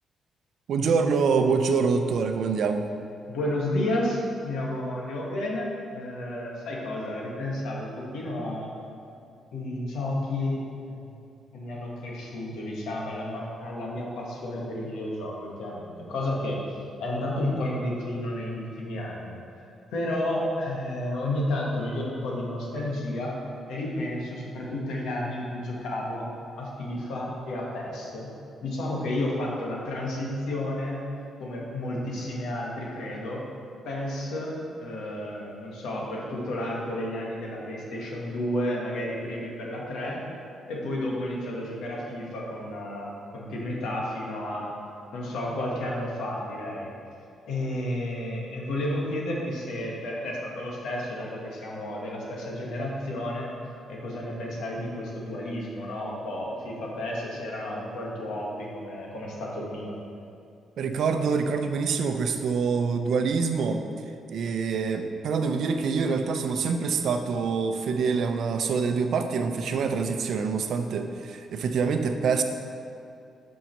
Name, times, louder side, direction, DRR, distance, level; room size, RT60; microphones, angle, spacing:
voice 1, 0.7-2.9 60.8-63.8 64.3-72.4, right 5 dB, 65° right, 6 dB, 0.6 m, -25 dB
voice 2, 3.3-8.7 9.5-10.6 10.9-11.1 11.5-19.4 19.9-23.4 23.7-26.3 26.6-28.3 28.6-31.0 31.4-33.4 33.8-40.2 40.7-44.7 45.1-46.9 47.5-53.5 53.9-59.9, left 1 dB, 85° left, -3 dB, 1.7 m, -31 dB
6.0 x 5.4 x 6.0 m, 2.6 s
cardioid pair, 140°, 0 cm